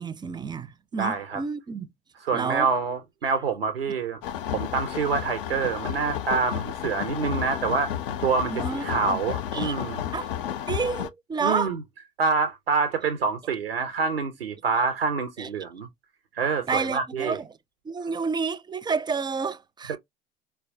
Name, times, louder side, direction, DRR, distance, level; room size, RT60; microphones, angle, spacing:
voice 1, 0.0-1.9 2.3-2.7 8.5-9.2 9.5-9.8 10.1-10.3 10.7-11.8 14.7-14.8 15.4-15.5 16.7-17.5 17.8-20.0, right 5 dB, 15° right, 0.4 m, -30 dB
voice 2, 1.0-1.4 2.2-4.2 4.5-7.9 8.2-10.0 11.4-11.8 12.2-15.9 16.3-17.4 19.9-20.0, right 5 dB, 85° right, 0.6 m, -26 dB
sound 1, 4.2-11.1, left 9 dB, 70° left, 0.5 m, -32 dB
4.2 x 2.2 x 2.6 m
figure-of-eight pair, 60°, 29 cm